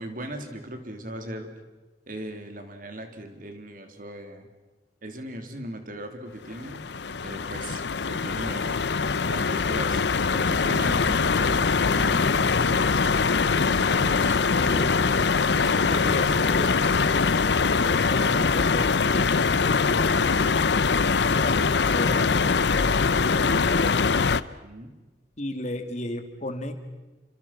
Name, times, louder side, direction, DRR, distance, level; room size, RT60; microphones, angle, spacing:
voice 1, 0.0-1.5 2.1-4.5 5.0-6.8 7.2-8.8 9.2-10.0 10.3-12.9 13.4-14.4 14.7-15.0 15.3-16.4 24.6-24.9, right 1 dB, 50° right, 6 dB, 3.3 m, -39 dB
sound 1, 6.4-24.4, left 5 dB, 75° left, 0.7 m, -23 dB
voice 2, 14.5-15.4 15.8-18.9 19.1-20.4 21.3-24.1 25.4-26.7, left 1 dB, 40° left, 7 dB, 2.5 m, -34 dB
29.5 x 25.5 x 6.0 m, 1.2 s
head